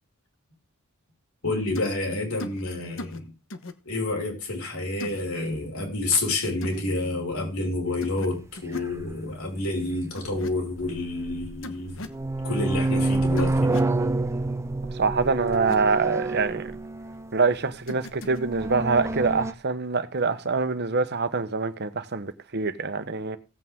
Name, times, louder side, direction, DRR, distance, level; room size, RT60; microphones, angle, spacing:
voice 1, 1.4-3.3 3.8-12.1 12.4-13.8, left 2 dB, 85° left, 5.4 m, -29 dB
sound 1, 1.7-2.0 2.4-2.6 3.0-3.2 3.5-3.7 5.0-5.2 6.6-6.8 8.0-8.3 8.5-8.9 10.2-10.5 11.6-12.2 13.4-13.9 15.5-15.8 17.9-18.4, left 2 dB, 65° left, 1.2 m, -38 dB
sound 2, 9.0-9.1 10.8-11.5 11.9-17.4 18.2-19.5, right 2 dB, 15° right, 0.6 m, -27 dB
voice 2, 14.9-16.7 17.3-23.4, right 4 dB, 50° right, 1.1 m, -25 dB
16.5 x 8.6 x 3.7 m
head